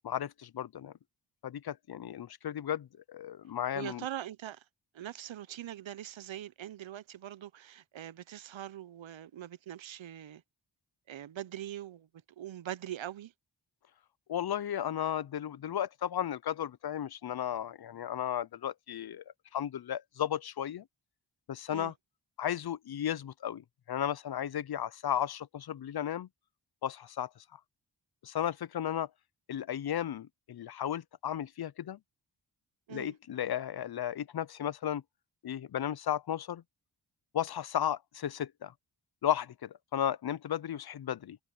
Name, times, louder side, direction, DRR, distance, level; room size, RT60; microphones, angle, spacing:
voice 1, 0.0-0.9 1.4-4.0 14.3-19.2 19.5-20.8 21.5-21.9 22.4-26.3 26.8-27.3 28.2-29.1 29.5-32.0 32.9-35.0 35.4-36.6 37.3-38.7 39.2-41.4, left 10 dB, 55° left, 0.6 m, -34 dB
voice 2, 3.7-4.6 4.9-10.4 11.1-12.1 12.4-13.3 21.7-21.9 32.9-33.1, right 11 dB, 80° right, 0.8 m, -42 dB
cardioid pair, 65°, 45 cm